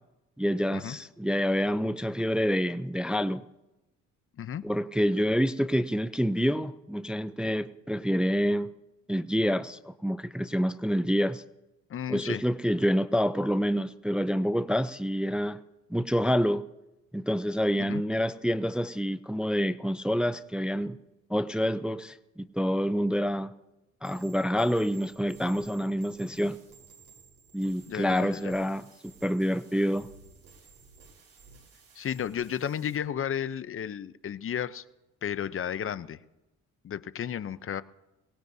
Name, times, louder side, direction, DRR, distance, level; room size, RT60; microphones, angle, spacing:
voice 1, 0.4-3.4 4.6-8.7 9.1-11.4 12.1-15.6 15.9-16.6 17.1-21.0 21.3-23.5 24.0-26.6 27.5-30.1, equal, 5° right, 12 dB, 0.4 m, -27 dB
voice 2, 11.9-12.4 17.8-18.0 27.9-28.5 32.0-34.8 35.2-36.2 36.8-37.8, left 9 dB, 45° left, 14 dB, 0.6 m, -33 dB
sound 1, 24.0-33.0, right 5 dB, 70° right, 4.3 m, -55 dB
23.0 x 18.5 x 2.7 m, 0.98 s
cardioid pair, 90°, 30 cm